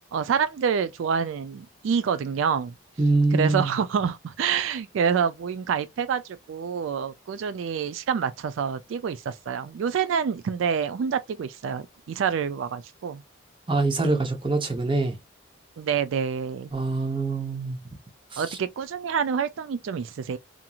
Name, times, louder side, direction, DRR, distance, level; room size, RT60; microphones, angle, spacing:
voice 1, 0.1-2.7 3.3-13.2 15.8-16.7 18.4-20.4, right 7 dB, 80° right, 0.3 m, -27 dB
voice 2, 3.0-3.7 13.7-15.1 16.7-17.8, right 3 dB, 25° right, 0.7 m, -24 dB
2.9 x 2.5 x 2.3 m
head